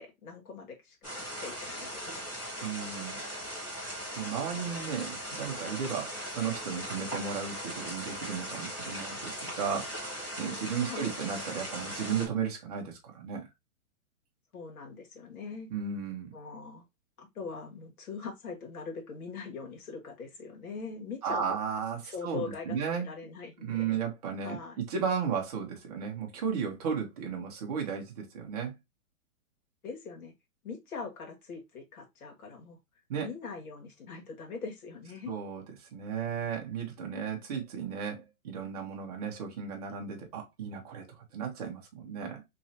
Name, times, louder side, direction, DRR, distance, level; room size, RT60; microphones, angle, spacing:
voice 1, 0.0-2.2 10.8-11.2 14.5-15.7 16.3-16.8 17.2-21.6 22.0-24.0 24.4-24.8 29.8-30.3 30.6-32.8 33.2-35.3, left 5 dB, 85° left, 2.0 m, -42 dB
sound 1, 1.0-12.3, equal, 10° left, 1.7 m, -39 dB
voice 2, 2.6-3.2 4.1-9.9 10.4-13.5 15.7-16.3 21.2-23.1 23.6-28.7 33.1-33.3 35.3-41.1 41.3-42.4, right 7 dB, 25° right, 1.0 m, -34 dB
3.6 x 3.2 x 2.8 m
hypercardioid pair, 170°, 43 cm